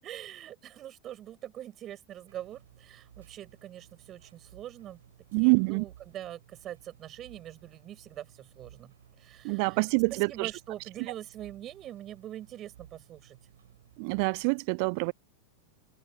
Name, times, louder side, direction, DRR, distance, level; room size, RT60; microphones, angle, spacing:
voice 1, 0.0-5.0 5.4-8.9 9.2-13.4, right 12 dB, 30° right, 7.8 m, -44 dB
sound 1, 2.3-14.5, right 10 dB, 60° right, 6.4 m, -57 dB
voice 2, 5.3-5.8 9.4-10.5 14.0-15.1, right 37 dB, 45° right, 0.5 m, -26 dB
figure-of-eight pair, 90°, 0 cm